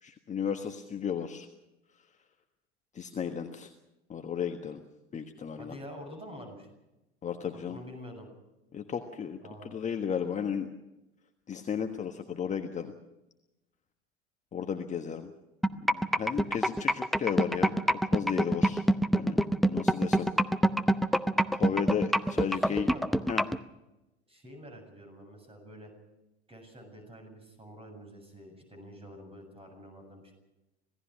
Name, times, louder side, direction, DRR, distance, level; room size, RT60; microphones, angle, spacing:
voice 1, 0.0-1.5 2.9-3.7 4.1-4.8 5.1-5.7 7.2-7.8 8.7-9.4 9.6-10.7 11.5-12.9 14.5-15.3 15.8-17.7 18.1-18.8 19.1-20.3 21.5-22.9 23.3-23.4, left 7 dB, 20° left, 6 dB, 1.4 m, -34 dB
voice 2, 5.6-6.7 7.7-8.3 9.4-9.8 22.4-23.3 24.3-25.9 26.5-30.3, equal, 15° right, 6 dB, 7.9 m, -47 dB
sound 1, 15.6-23.6, right 1 dB, ahead, 0.7 m, -24 dB
26.5 x 17.5 x 6.3 m, 0.96 s
figure-of-eight pair, 80°, 33 cm